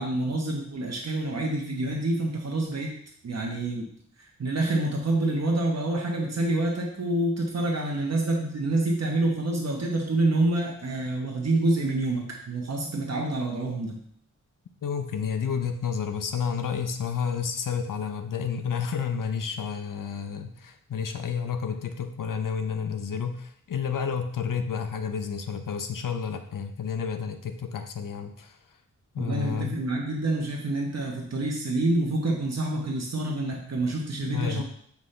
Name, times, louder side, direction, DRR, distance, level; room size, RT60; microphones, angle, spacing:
voice 1, 0.0-2.9 3.2-3.9 4.2-14.0 29.2-34.6, right 2 dB, 55° right, -1 dB, 1.1 m, -27 dB
voice 2, 14.8-28.6 29.1-29.8 34.2-34.6, left 6 dB, 85° left, 7 dB, 0.7 m, -30 dB
7.3 x 5.7 x 3.3 m, 0.65 s
wide cardioid pair, 150°, 32 cm